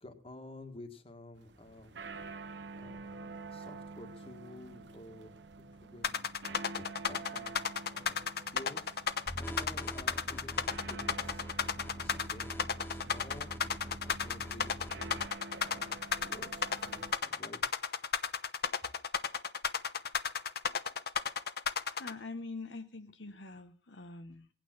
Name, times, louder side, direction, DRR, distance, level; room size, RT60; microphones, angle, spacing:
voice 1, 0.0-1.9 2.8-5.3 5.8-9.0 9.5-13.5 14.0-14.8 15.6-17.6, left 1 dB, 30° left, 7 dB, 1.7 m, -52 dB
sound 1, 1.4-17.1, right 3 dB, 75° right, 1.0 m, -48 dB
sound 2, 6.0-22.1, left 6 dB, 60° left, 0.8 m, -33 dB
sound 3, 9.3-15.3, equal, 10° left, 0.9 m, -45 dB
voice 2, 21.9-24.5, left 3 dB, 85° left, 8 dB, 1.0 m, -44 dB
18.0 x 9.0 x 6.0 m, 0.42 s
head